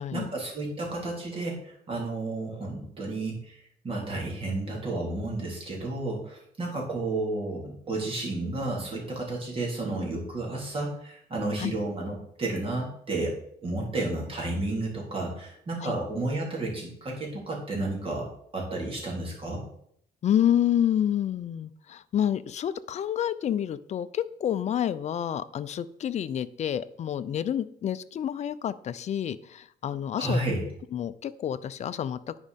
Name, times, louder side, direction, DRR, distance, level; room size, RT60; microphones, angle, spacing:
voice 1, 0.0-3.6 3.8-13.3 13.6-18.3 18.5-19.6 30.2-30.6, right 2 dB, 35° right, -2 dB, 3.8 m, -32 dB
voice 2, 20.2-32.2, left 10 dB, 40° left, 14 dB, 0.5 m, -29 dB
9.6 x 5.3 x 5.2 m, 0.68 s
cardioid pair, 110°, 17 cm